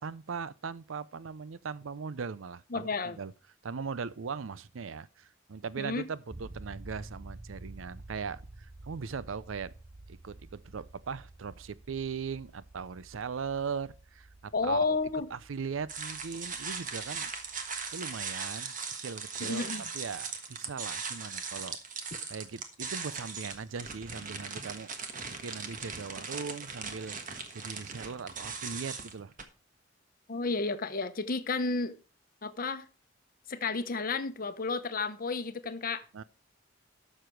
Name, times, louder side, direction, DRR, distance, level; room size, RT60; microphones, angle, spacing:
voice 1, 0.0-3.3 3.6-9.7 10.1-17.3 17.9-18.7 19.0-21.8 22.3-29.3 36.1-36.2, right 5 dB, 80° right, 0.5 m, -39 dB
voice 2, 2.7-3.2 5.8-6.0 14.5-15.3 19.4-19.9 30.3-31.9 32.4-32.9 33.5-36.0, left 4 dB, 45° left, 0.9 m, -31 dB
sound 1, 6.3-18.2, right 2 dB, 20° right, 0.6 m, -50 dB
sound 2, 15.9-29.4, right 5 dB, 40° right, 1.4 m, -39 dB
12.5 x 6.7 x 4.6 m
head